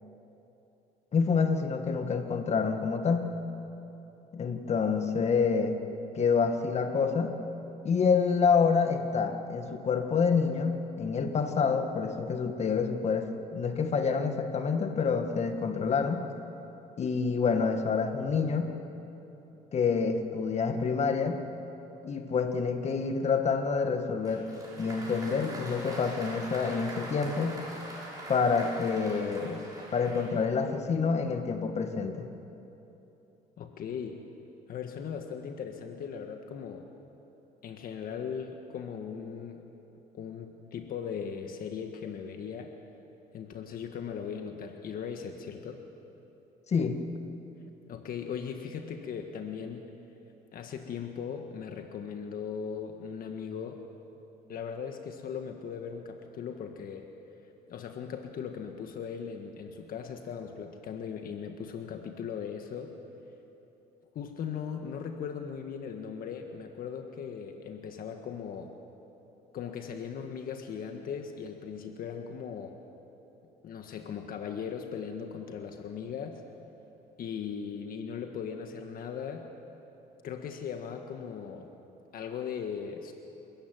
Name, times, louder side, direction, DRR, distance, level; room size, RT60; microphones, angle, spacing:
voice 1, 1.1-3.3 4.3-5.8 6.2-7.4 7.8-16.3 17.0-18.8 19.7-21.4 22.0-24.5 24.8-27.6 28.3-29.6 29.9-32.3 46.7-47.0, left 5 dB, 40° left, 6 dB, 1.9 m, -27 dB
Applause, 24.2-30.6, right 1 dB, 20° right, 7.6 m, -43 dB
voice 2, 33.6-34.2 34.7-36.9 37.6-39.6 40.1-42.7 43.3-45.8 47.9-49.9 50.5-53.8 54.5-57.1 57.7-63.0 64.1-68.7 69.5-72.8 73.6-76.4 77.2-79.5 80.2-81.7 82.1-83.1, left 7 dB, 60° left, 4 dB, 1.7 m, -38 dB
28.0 x 14.5 x 9.5 m, 3.0 s
cardioid pair, 110°, 17 cm